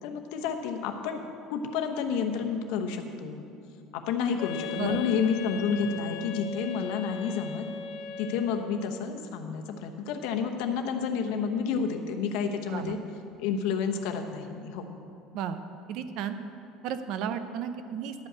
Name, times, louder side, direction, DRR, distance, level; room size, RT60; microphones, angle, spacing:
voice 1, 0.0-1.2 1.5-3.4 3.9-7.7 8.2-13.0 13.4-14.9, left 6 dB, 70° left, 5 dB, 0.9 m, -30 dB
Wind instrument woodwind instrument, 4.4-8.8, left 8 dB, 55° left, 0.4 m, -38 dB
voice 2, 15.9-16.4 16.8-18.3, right 8 dB, 55° right, 10 dB, 0.6 m, -33 dB
11.5 x 5.3 x 8.0 m, 2.7 s
cardioid pair, 160°, 0 cm